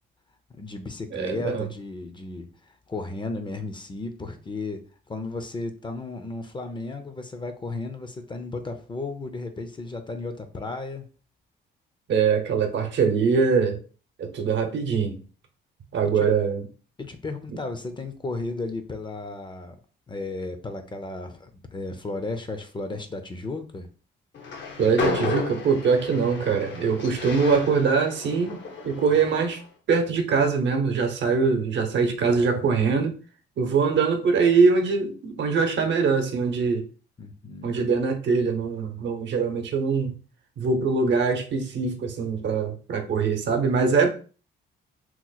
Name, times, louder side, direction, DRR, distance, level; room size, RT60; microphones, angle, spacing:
voice 1, 0.6-11.1 16.0-16.3 17.0-19.8 20.1-23.9 37.2-37.8, left 3 dB, 25° left, 0.5 m, -34 dB
voice 2, 1.1-1.7 12.1-13.8 14.2-15.2 15.9-16.7 24.8-28.6 28.8-29.6 29.9-33.2 33.6-36.9 37.6-40.1 40.6-44.1, right 5 dB, 65° right, 0.8 m, -23 dB
Train, 24.3-29.6, left 3 dB, 65° left, 0.8 m, -33 dB
3.0 x 2.0 x 3.9 m
cardioid pair, 90°, 20 cm